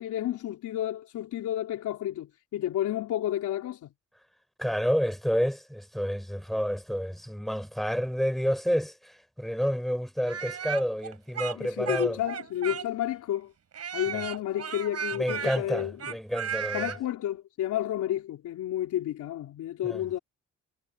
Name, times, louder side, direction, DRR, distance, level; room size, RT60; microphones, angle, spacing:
voice 1, 0.0-3.9 11.5-13.5 13.9-16.0 16.7-20.2, left 12 dB, 80° left, 4.0 m, -31 dB
voice 2, 4.6-12.2 14.1-14.2 15.1-17.0 19.8-20.0, equal, ahead, 4.6 m, -29 dB
Speech, 10.2-13.1 13.7-17.0, right 8 dB, 55° right, 7.6 m, -35 dB
cardioid pair, 90°, 30 cm